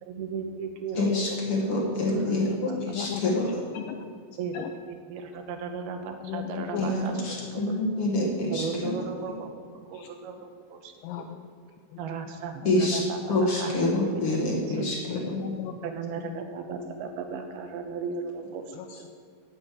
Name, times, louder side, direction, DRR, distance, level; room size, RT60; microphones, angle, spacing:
voice 1, 0.0-1.2 1.5-2.0 2.3-3.1 4.4-7.7 8.5-11.3 12.0-14.9 15.8-19.0, right 5 dB, 80° right, 6 dB, 2.8 m, -36 dB
voice 2, 0.9-3.5 6.8-8.9 12.6-13.0 13.3-15.4, left 1 dB, 45° left, -2 dB, 2.0 m, -27 dB
voice 3, 2.9-3.4 3.7-4.1 4.5-4.7 6.2-7.8 8.8-9.0 9.9-10.1 11.0-11.2 11.9-12.0 15.1-15.7 16.2-16.4 18.8-19.1, left 10 dB, 90° left, 6 dB, 2.0 m, -36 dB
9.6 x 8.7 x 8.4 m, 2.1 s
omnidirectional pair, 4.6 m